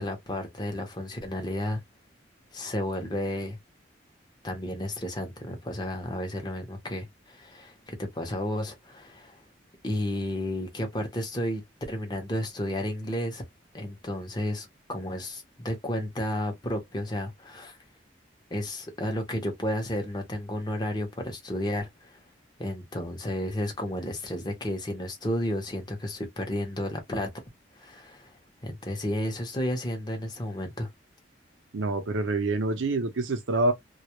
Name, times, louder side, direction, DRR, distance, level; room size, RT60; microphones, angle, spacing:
voice 1, 0.0-1.8 2.5-3.6 4.4-9.4 9.8-13.4 13.7-17.8 18.5-22.2 22.6-27.3 27.8-28.3 28.6-30.9, left 1 dB, 20° left, 0.7 m, -32 dB
voice 2, 31.7-33.7, right 2 dB, 80° right, 0.6 m, -26 dB
2.2 x 2.0 x 2.9 m
head